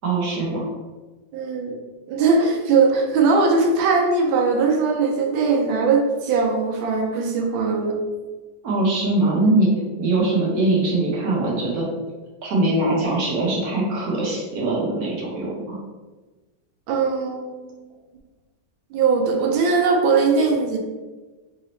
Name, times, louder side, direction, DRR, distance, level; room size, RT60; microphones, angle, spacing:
voice 1, 0.0-0.7 8.6-9.7 10.0-11.9 12.4-15.8, right 2 dB, 55° right, -4 dB, 1.4 m, -22 dB
voice 2, 1.3-1.8 2.1-8.0 16.9-17.9 18.9-20.8, right 4 dB, 90° right, 2 dB, 1.4 m, -20 dB
4.1 x 2.7 x 3.0 m, 1.2 s
omnidirectional pair, 2.1 m